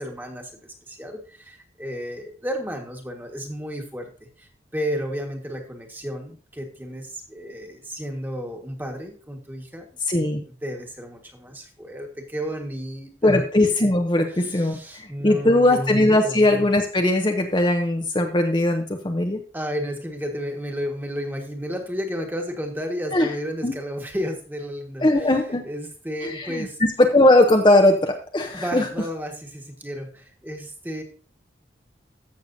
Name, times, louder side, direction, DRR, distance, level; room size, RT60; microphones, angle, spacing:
voice 1, 0.0-4.1 4.4-9.9 10.6-13.5 14.2-16.4 19.5-25.3 25.6-26.8 28.5-31.0, equal, 10° right, 3 dB, 1.5 m, -32 dB
voice 2, 10.1-10.4 13.2-19.4 23.1-23.3 23.6-23.7 25.0-25.6 26.2-28.9, left 1 dB, 25° left, 4 dB, 0.7 m, -19 dB
15.0 x 6.7 x 2.7 m, 0.41 s
head